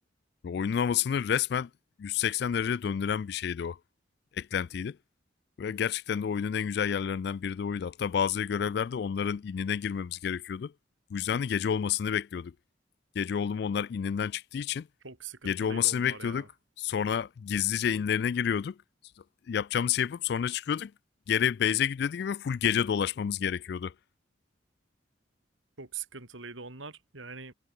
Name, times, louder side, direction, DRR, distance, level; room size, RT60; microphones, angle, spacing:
voice 1, 0.4-1.7 2.0-3.8 4.3-5.0 5.6-10.7 11.1-12.5 13.2-14.9 15.4-16.5 16.8-18.8 19.5-20.9 21.3-23.9, left 8 dB, 55° left, 0.3 m, -29 dB
voice 2, 15.0-16.5 25.8-27.5, right 5 dB, 85° right, 3.8 m, -43 dB
head